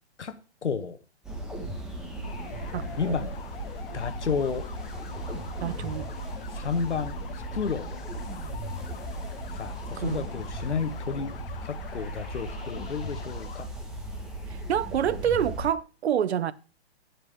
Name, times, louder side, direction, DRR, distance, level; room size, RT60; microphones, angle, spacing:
voice 1, 0.2-1.0 3.0-3.3 3.9-4.7 6.5-8.0 9.5-11.3 11.6-13.7, left 5 dB, 85° left, 1.4 m, -31 dB
sound 1, 1.2-15.7, right 1 dB, ahead, 1.5 m, -37 dB
sound 2, 2.2-13.6, left 10 dB, 55° left, 1.0 m, -45 dB
voice 2, 2.7-3.2 5.6-6.1 10.0-10.2 14.7-16.5, right 9 dB, 70° right, 0.8 m, -27 dB
16.0 x 6.0 x 3.5 m
hypercardioid pair, 140°, 34 cm